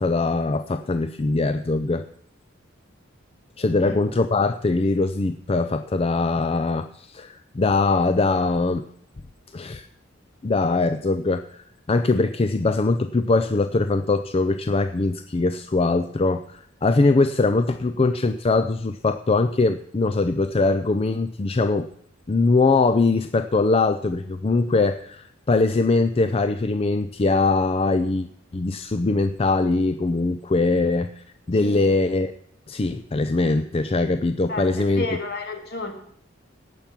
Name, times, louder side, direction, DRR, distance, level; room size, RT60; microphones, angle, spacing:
voice 1, 0.0-2.0 3.6-8.9 9.5-9.9 10.4-21.9 22.3-28.3 28.5-32.3 32.7-35.2, left 3 dB, 30° left, 10 dB, 0.4 m, -22 dB
voice 2, 34.5-35.9, left 3 dB, 55° left, 4 dB, 2.3 m, -31 dB
17.5 x 5.9 x 7.4 m, 0.66 s
head